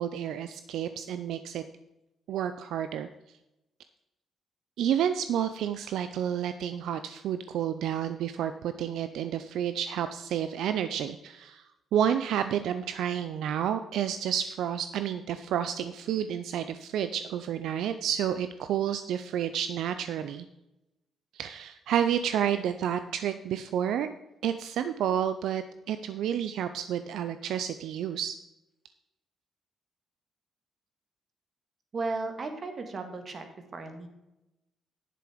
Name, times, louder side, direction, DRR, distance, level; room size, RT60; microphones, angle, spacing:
voice 1, 0.0-1.6 2.3-3.1 4.8-11.6 11.9-20.5 21.3-24.1 24.4-28.3, right 9 dB, 80° right, 10 dB, 0.5 m, -30 dB
voice 2, 31.9-33.5 33.7-34.1, right 3 dB, 45° right, 6 dB, 1.8 m, -35 dB
10.0 x 7.7 x 5.0 m, 0.94 s
cardioid pair, 90°, 0 cm